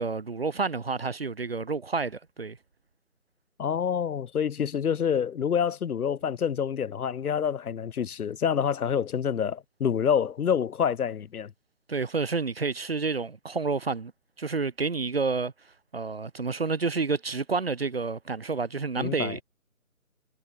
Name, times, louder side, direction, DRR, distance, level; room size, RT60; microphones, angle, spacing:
voice 1, 0.0-2.6 11.9-14.1 14.4-15.5 15.9-19.4, right 4 dB, 45° right, 2.3 m, -29 dB
voice 2, 3.6-11.5 19.0-19.4, left 7 dB, 85° left, 0.7 m, -27 dB
figure-of-eight pair, 170°, 43 cm